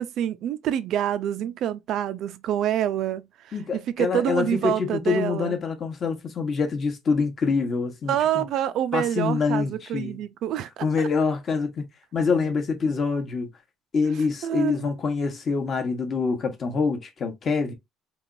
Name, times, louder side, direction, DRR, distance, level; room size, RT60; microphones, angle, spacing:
voice 1, 0.0-5.5 8.1-11.1 14.4-14.9, right 10 dB, 55° right, 0.3 m, -27 dB
voice 2, 3.5-8.4 8.9-10.2 10.8-11.8 12.1-13.5 13.9-17.7, left 4 dB, 35° left, 0.9 m, -25 dB
3.2 x 2.9 x 2.5 m
cardioid pair, 150°, 0 cm